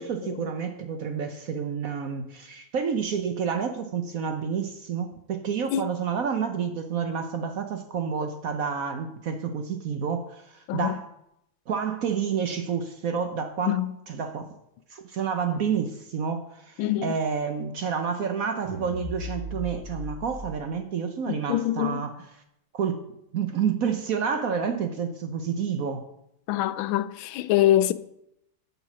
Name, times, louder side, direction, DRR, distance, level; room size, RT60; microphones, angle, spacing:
voice 1, 0.0-11.1 11.7-14.5 14.9-22.3 22.7-23.0 23.3-26.0, right 6 dB, 60° right, 1.0 m, -29 dB
voice 2, 16.8-17.2 21.3-22.0 26.5-27.9, left 13 dB, 90° left, 1.4 m, -24 dB
sound 1, 18.6-20.5, equal, 30° right, 1.7 m, -36 dB
8.5 x 6.8 x 6.1 m
omnidirectional pair, 2.1 m